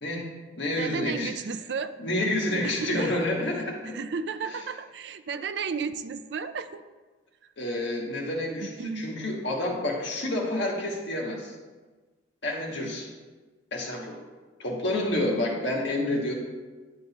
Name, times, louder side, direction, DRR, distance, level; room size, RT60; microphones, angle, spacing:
voice 1, 0.0-1.3 2.0-4.0 4.5-4.6 7.6-11.6 12.4-13.1 13.7-14.2 14.6-16.3, left 1 dB, 60° left, -2 dB, 1.7 m, -29 dB
voice 2, 0.8-1.9 2.6-3.3 3.8-6.8 8.6-9.1, right 5 dB, 60° right, 11 dB, 0.4 m, -33 dB
11.0 x 6.5 x 3.0 m, 1.3 s
head